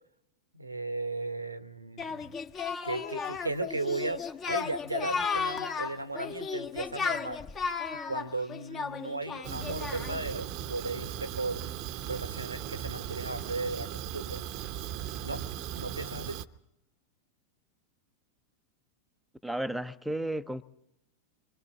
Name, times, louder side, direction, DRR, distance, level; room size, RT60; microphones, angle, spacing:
voice 1, 0.5-2.4 2.8-7.4 7.9-11.6 12.1-14.4 15.2-15.4 15.8-16.4, right 2 dB, 85° right, 1.0 m, -36 dB
Singing, 2.0-10.3, left 5 dB, 25° left, 1.2 m, -34 dB
Fire, 9.4-16.4, right 10 dB, 40° right, 0.8 m, -38 dB
voice 2, 19.4-20.6, right 1 dB, ahead, 0.7 m, -33 dB
26.0 x 24.0 x 4.1 m
figure-of-eight pair, 90°, 0 cm